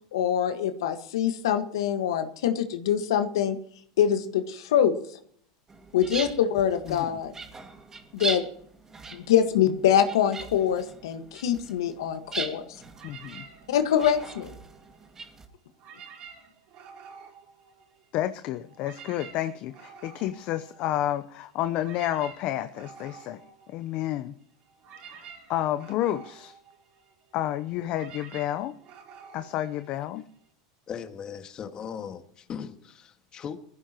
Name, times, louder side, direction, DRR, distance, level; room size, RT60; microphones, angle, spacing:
voice 1, 0.1-3.6 4.0-5.2 5.9-7.3 8.1-8.4 9.1-12.8 13.7-14.5, left 9 dB, 80° left, 8 dB, 1.6 m, -24 dB
sound 1, 5.7-15.5, right 4 dB, 20° right, 2.1 m, -40 dB
sound 2, 12.9-15.4 15.7-18.3 18.6-30.5, right 6 dB, 55° right, 4.5 m, -50 dB
voice 2, 13.0-13.4 18.1-23.4 23.7-24.3 25.1-25.2 25.5-26.6 27.3-28.7 29.3-30.2, left 13 dB, 50° left, 11 dB, 0.8 m, -30 dB
voice 3, 30.9-33.6, left 7 dB, 35° left, 7 dB, 1.8 m, -38 dB
21.0 x 15.0 x 3.0 m, 0.62 s
hypercardioid pair, 105°, 2 cm